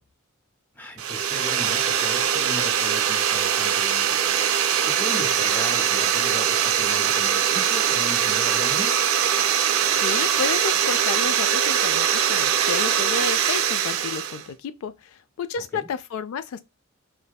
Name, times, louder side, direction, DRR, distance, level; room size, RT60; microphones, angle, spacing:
voice 1, 0.7-4.5 4.8-9.0 15.6-15.9, left 1 dB, 10° left, 0.4 m, -37 dB
sound 1, 1.0-14.4, right 9 dB, 80° right, 0.3 m, -22 dB
voice 2, 10.0-16.6, left 6 dB, 90° left, 0.3 m, -31 dB
2.6 x 2.1 x 2.2 m
head